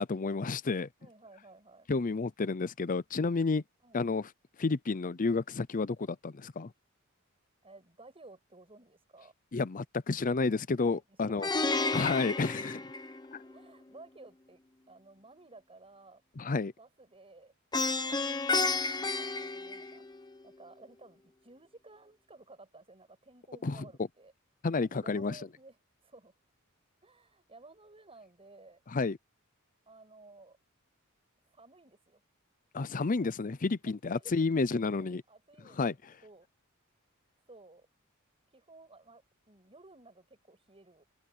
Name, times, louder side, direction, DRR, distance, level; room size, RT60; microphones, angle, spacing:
voice 1, 0.0-0.9 1.9-3.6 3.9-4.3 4.6-6.7 9.5-11.5 11.9-12.8 13.3-13.4 16.4-16.7 23.6-23.8 24.6-25.4 28.9-29.2 32.7-35.2 35.8-35.9, left 4 dB, 40° left, 0.6 m, -30 dB
voice 2, 1.0-1.9 3.8-4.0 7.6-9.3 10.9-12.0 13.3-14.6 14.9-16.2 16.8-17.5 19.0-24.3 24.8-25.8 26.0-26.3 27.0-28.8 29.9-30.6 31.5-32.2 33.8-36.5 37.4-37.9 38.5-41.0, right 2 dB, 30° right, 7.6 m, -56 dB
Plucked string instrument, 11.4-13.6 17.7-20.3, left 3 dB, 20° left, 1.2 m, -31 dB
head